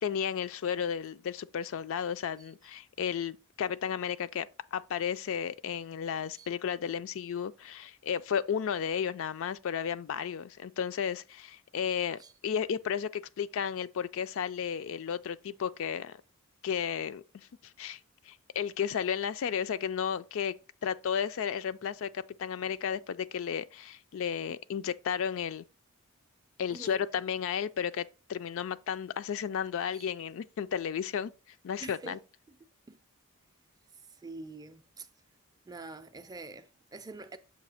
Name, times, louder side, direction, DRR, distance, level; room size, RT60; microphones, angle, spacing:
voice 1, 0.0-16.2 16.6-17.5 17.8-18.0 18.3-20.6 20.8-25.6 26.6-31.3 31.6-32.2, left 7 dB, 60° left, 0.3 m, -33 dB
voice 2, 26.7-27.1 29.9-30.1 31.8-32.2 32.5-32.6 32.9-33.0 34.2-35.1 35.7-37.4, right 3 dB, 15° right, 0.4 m, -46 dB
6.9 x 2.8 x 5.6 m
head